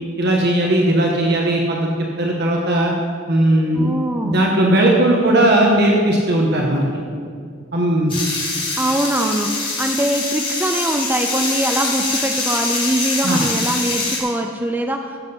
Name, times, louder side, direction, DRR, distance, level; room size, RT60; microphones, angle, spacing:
voice 1, 0.2-1.9 2.2-2.9 3.3-3.9 4.2-6.9 7.7-8.2 13.2-13.5, right 1 dB, 50° right, -1 dB, 1.2 m, -17 dB
voice 2, 3.7-4.4 8.8-15.2, right 1 dB, 10° right, 4 dB, 0.4 m, -22 dB
sound 1, 8.1-14.2, left 3 dB, 25° left, 2.8 m, -24 dB
15.0 x 7.7 x 5.4 m, 2.2 s
head